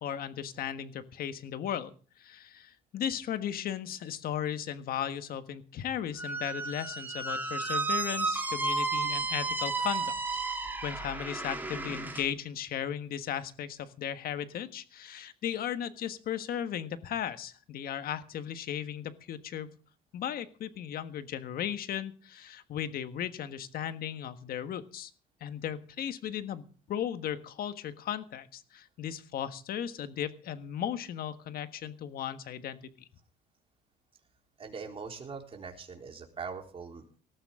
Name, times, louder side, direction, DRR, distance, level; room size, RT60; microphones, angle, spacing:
voice 1, 0.0-1.9 2.2-10.1 10.4-10.6 10.8-19.8 20.1-25.1 25.4-33.1, left 9 dB, 60° left, 11 dB, 1.5 m, -36 dB
Squeak, 6.2-12.3, right 3 dB, 10° right, 3.1 m, -32 dB
voice 2, 34.6-37.2, right 5 dB, 35° right, 2 dB, 3.8 m, -42 dB
19.0 x 14.0 x 3.7 m, 0.39 s
cardioid pair, 110°, 17 cm